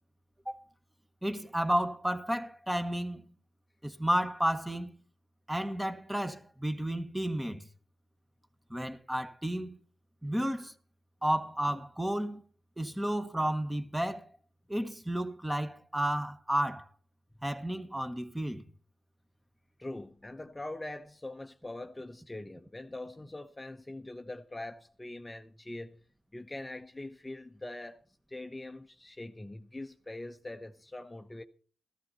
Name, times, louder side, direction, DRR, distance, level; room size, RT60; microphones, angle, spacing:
voice 1, 1.2-3.3 3.8-5.0 5.5-7.6 8.7-9.7 10.2-10.7 11.2-12.4 12.8-14.3 14.7-16.9 17.4-18.6, right 1 dB, 10° right, 1.3 m, -32 dB
voice 2, 19.8-26.0 26.3-31.4, left 2 dB, 20° left, 0.9 m, -43 dB
14.0 x 13.5 x 4.2 m
cardioid pair, 60°, 0 cm